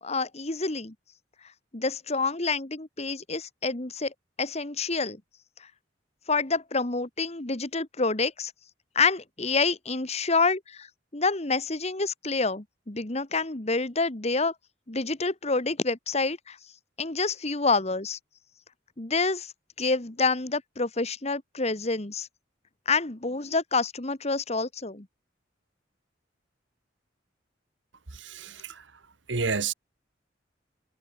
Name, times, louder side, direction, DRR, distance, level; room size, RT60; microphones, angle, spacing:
voice 1, 0.0-0.9 1.7-5.2 6.3-8.5 8.9-10.9 11.1-14.5 14.9-16.6 17.0-18.2 19.0-19.5 19.8-22.3 22.8-25.0, left 3 dB, 35° left, 1.6 m, -28 dB
voice 2, 28.1-28.8 29.3-29.7, right 4 dB, 80° right, 1.4 m, -30 dB
head